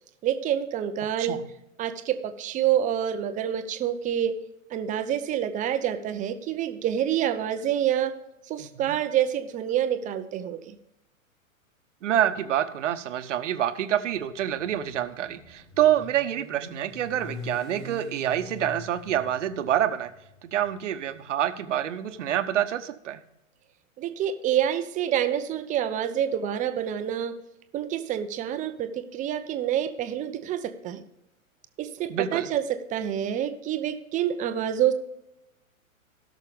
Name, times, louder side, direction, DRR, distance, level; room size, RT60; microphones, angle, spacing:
voice 1, 0.2-1.4 1.8-4.3 4.7-8.2 8.5-10.8 24.0-27.3 27.7-31.0 31.8-34.9, right 10 dB, 20° right, 10 dB, 0.7 m, -27 dB
voice 2, 12.0-20.1 20.4-23.2 32.1-32.5, right 11 dB, 60° right, 10 dB, 1.1 m, -27 dB
Motorcycle, 14.1-22.3, left 3 dB, 25° left, 4.3 m, -44 dB
17.0 x 6.4 x 3.4 m, 0.85 s
figure-of-eight pair, 115°, 41 cm